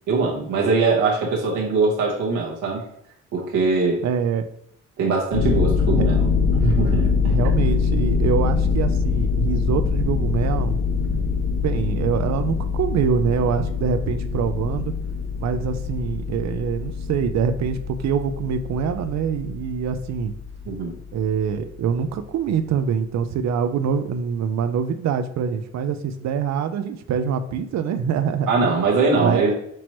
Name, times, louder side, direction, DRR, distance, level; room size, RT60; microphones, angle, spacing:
voice 1, 0.1-2.8 3.3-4.0 5.0-6.2 6.6-7.1 20.7-20.9 28.5-29.5, right 4 dB, 85° right, -4 dB, 1.1 m, -21 dB
voice 2, 4.0-4.5 7.3-10.8 11.6-14.9 15.4-20.3 21.1-28.8 29.2-29.5, right 7 dB, 65° right, 10 dB, 0.5 m, -24 dB
sound 1, 5.3-21.1, left 5 dB, 60° left, 1.2 m, -24 dB
6.1 x 2.9 x 3.0 m, 0.73 s
cardioid pair, 90°, 30 cm